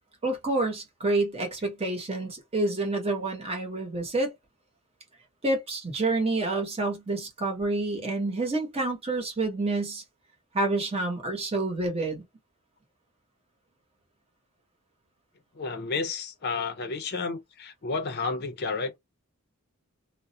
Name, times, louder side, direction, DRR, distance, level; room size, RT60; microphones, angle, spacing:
voice 1, 0.2-4.3 5.4-10.0 10.5-12.2, right 2 dB, 25° right, 0.9 m, -28 dB
voice 2, 15.6-19.0, left 4 dB, 45° left, 0.5 m, -31 dB
2.3 x 2.1 x 2.7 m
head